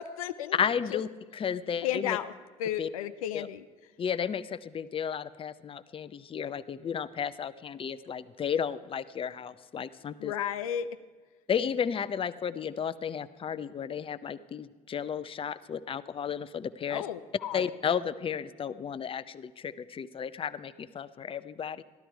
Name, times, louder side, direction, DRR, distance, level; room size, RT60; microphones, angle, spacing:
voice 1, 0.0-0.6 0.9-1.0 1.8-2.3 2.6-3.6 10.2-10.9 16.9-17.6, left 10 dB, 85° left, 11 dB, 0.4 m, -33 dB
voice 2, 0.5-2.2 2.8-2.9 3.3-3.5 4.0-10.3 11.5-17.0 17.5-21.8, left 7 dB, 30° left, 14 dB, 0.6 m, -33 dB
13.0 x 12.5 x 4.6 m, 1.4 s
hypercardioid pair, 60°, 18 cm